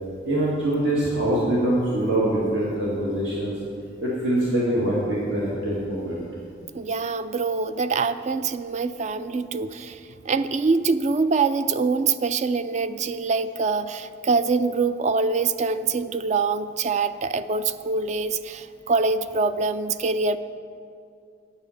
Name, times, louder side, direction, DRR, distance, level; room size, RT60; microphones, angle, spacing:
voice 1, 0.2-3.5 4.0-6.2, right 1 dB, 70° right, -7 dB, 2.0 m, -24 dB
voice 2, 6.7-20.4, right 4 dB, 35° right, 13 dB, 0.3 m, -24 dB
9.2 x 8.3 x 6.5 m, 2.5 s
head